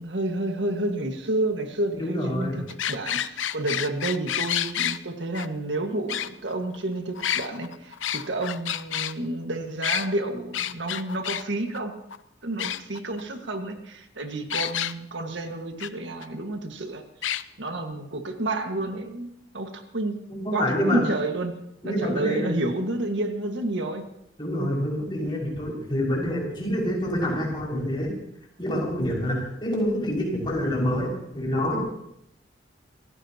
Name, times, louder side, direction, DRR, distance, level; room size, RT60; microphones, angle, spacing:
voice 1, 0.0-11.9 12.4-19.3 19.5-20.2 20.5-21.6 21.8-24.1, right 2 dB, 75° right, 4 dB, 1.8 m, -30 dB
voice 2, 2.0-2.6 20.3-21.0 21.8-22.6 24.4-28.1 28.6-31.9, equal, 25° left, -4 dB, 5.9 m, -27 dB
sound 1, 2.7-5.0 5.3-5.5 6.1-6.8 7.2-9.1 9.8-10.1 10.5-11.4 11.7-11.8 12.1-12.2 12.6-13.2 14.5-14.9 15.8-15.9 16.2-16.3 17.2-17.4, left 10 dB, 90° left, 0.7 m, -29 dB
27.0 x 16.5 x 3.0 m, 0.76 s
head